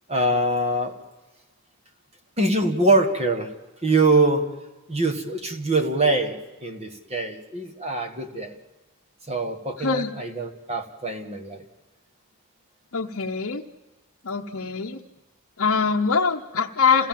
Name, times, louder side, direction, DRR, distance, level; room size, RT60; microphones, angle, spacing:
voice 1, 0.1-1.0 2.4-3.5 3.8-4.5 4.9-8.5 9.3-11.6, right 2 dB, 30° right, 6 dB, 1.7 m, -23 dB
voice 2, 9.8-10.1 12.9-13.6 14.2-15.0 15.6-17.1, left 5 dB, 65° left, -1 dB, 0.9 m, -23 dB
28.0 x 17.0 x 7.5 m, 1.2 s
head